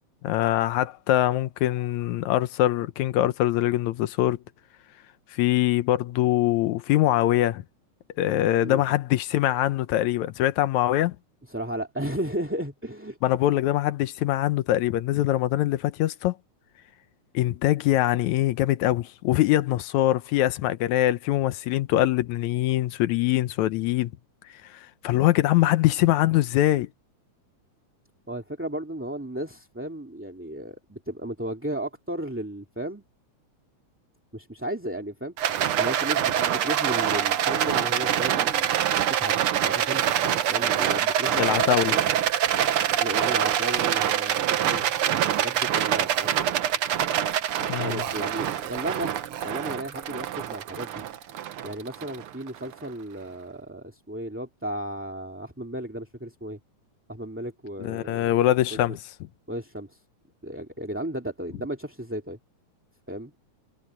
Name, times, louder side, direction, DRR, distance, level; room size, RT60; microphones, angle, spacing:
voice 1, 0.2-4.4 5.3-7.6 8.2-11.2 13.2-16.3 17.3-24.1 24.7-26.9 41.4-41.9 47.7-48.0 57.8-59.0, left 14 dB, 75° left, 2.0 m, -23 dB
voice 2, 11.5-13.2 28.3-33.0 34.3-38.7 39.0-42.1 42.9-46.4 47.8-49.1 49.4-51.0 51.6-56.6 57.1-58.3 59.5-60.0 60.4-62.4 63.1-63.3, right 1 dB, 5° right, 1.6 m, -34 dB
Rattle, 35.4-52.7, right 10 dB, 65° right, 1.5 m, -25 dB
omnidirectional pair, 3.5 m